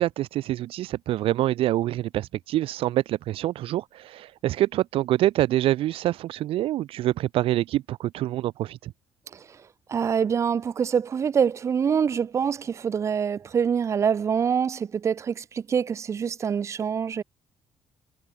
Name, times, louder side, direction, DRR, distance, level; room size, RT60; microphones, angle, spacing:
voice 1, 0.0-8.9, right 14 dB, 65° right, 1.1 m, -26 dB
voice 2, 9.9-17.2, right 7 dB, 30° right, 1.1 m, -25 dB
cardioid pair, 180°, 10 cm